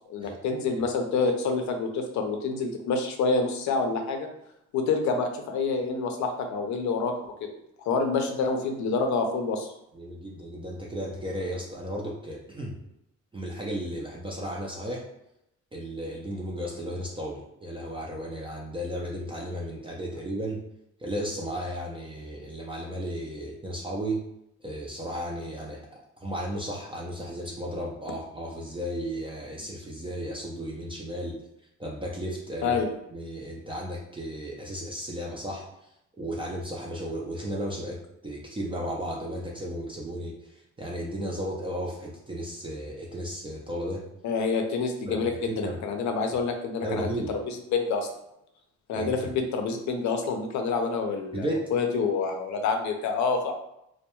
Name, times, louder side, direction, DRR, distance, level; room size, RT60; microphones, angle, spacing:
voice 1, 0.1-4.3 4.7-7.5 7.8-9.7 32.6-32.9 44.2-47.4 47.7-48.1 48.9-53.5, left 4 dB, 70° left, 5 dB, 0.5 m, -27 dB
voice 2, 9.9-12.7 13.3-15.1 15.7-20.6 21.0-24.2 24.6-25.8 26.2-31.4 31.8-32.8 33.1-35.9 36.2-44.1 45.1-45.8 46.8-47.4 48.9-49.3 51.3-51.7, equal, 15° right, -3 dB, 0.4 m, -34 dB
2.2 x 2.1 x 2.9 m, 0.80 s
cardioid pair, 90°, 30 cm